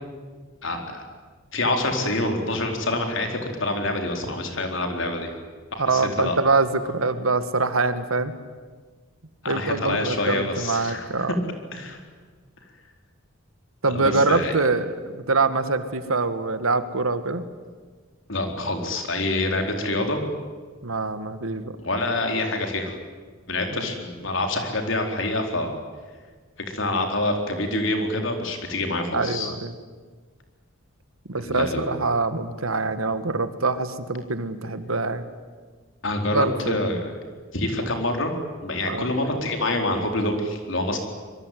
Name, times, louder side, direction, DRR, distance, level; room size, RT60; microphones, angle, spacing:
voice 1, 0.6-1.0 1.5-5.3 5.7-6.4 9.4-11.3 11.7-12.0 13.9-14.5 18.3-20.3 21.8-23.0 23.5-25.8 26.7-29.5 31.4-31.8 36.0-37.0 37.5-38.3 38.6-41.0, left 2 dB, 65° left, 4 dB, 4.4 m, -26 dB
voice 2, 5.8-8.3 9.5-11.4 13.8-15.0 15.3-17.4 20.8-21.7 23.8-23.9 29.1-29.7 31.3-35.2 36.3-36.8 38.9-39.1, right 3 dB, 90° right, 11 dB, 1.8 m, -24 dB
25.5 x 22.5 x 9.4 m, 1.5 s
head